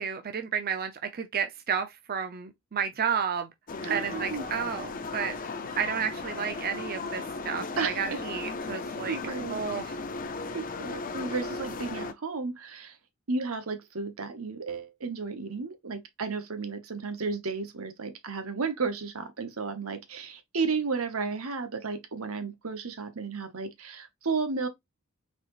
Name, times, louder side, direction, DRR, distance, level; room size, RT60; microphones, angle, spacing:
voice 1, 0.0-3.5 3.9-5.3 5.8-9.2 9.5-9.9, right 7 dB, 45° right, 0.6 m, -31 dB
sound 1, 3.7-12.1, left 3 dB, 40° left, 0.6 m, -36 dB
voice 2, 3.8-4.5 7.8-8.2 9.1-9.6 10.5-13.0 13.3-24.7, right 4 dB, 80° right, 1.0 m, -33 dB
4.1 x 3.6 x 3.0 m
head